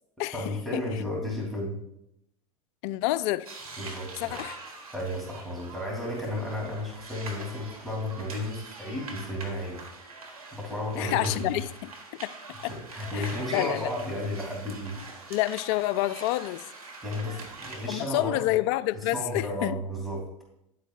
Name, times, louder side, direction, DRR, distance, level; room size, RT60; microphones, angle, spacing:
voice 1, 0.3-1.8 3.8-4.4 4.9-9.8 10.5-11.6 12.7-15.0 17.0-18.4 18.9-20.4, left 1 dB, ahead, 3.1 m, -33 dB
voice 2, 2.8-3.5 4.2-4.6 11.0-11.7 12.2-12.3 12.6-12.7 13.1-13.9 15.3-16.6 17.9-19.8, left 16 dB, 50° left, 0.4 m, -28 dB
sound 1, 3.4-17.9, right 3 dB, 85° right, 1.4 m, -44 dB
10.5 x 8.3 x 2.5 m
figure-of-eight pair, 80°, 18 cm